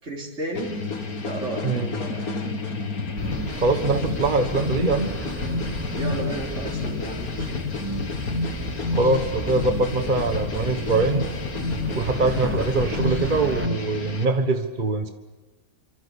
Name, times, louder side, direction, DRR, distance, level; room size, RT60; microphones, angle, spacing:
voice 1, 0.0-0.8 1.2-2.4 5.9-7.6, right 1 dB, 55° right, -3 dB, 4.1 m, -33 dB
sound 1, 0.5-14.2, left 3 dB, 85° left, 2.5 m, -29 dB
voice 2, 1.6-2.0 3.6-5.1 8.9-11.3 11.9-15.1, right 3 dB, 35° right, 6 dB, 1.5 m, -23 dB
sound 2, 3.2-13.7, right 1 dB, 10° right, 1.0 m, -35 dB
27.0 x 25.0 x 8.5 m, 1.2 s
omnidirectional pair, 1.5 m